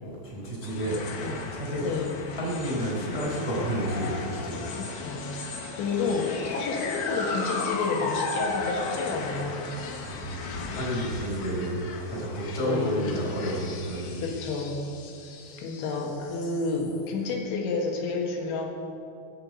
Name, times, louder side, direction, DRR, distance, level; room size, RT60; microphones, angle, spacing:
voice 1, 0.0-2.0 2.3-4.7 10.0-14.3 15.4-15.5, equal, 15° left, -5 dB, 3.9 m, -31 dB
sound 1, 0.6-17.1, left 3 dB, 70° left, 3.1 m, -36 dB
voice 2, 1.8-2.2 4.8-9.8 12.6-13.0 14.2-14.8 15.5-18.7, left 4 dB, 90° left, 0 dB, 4.1 m, -30 dB
20.0 x 6.9 x 8.2 m, 2.6 s
omnidirectional pair, 5.2 m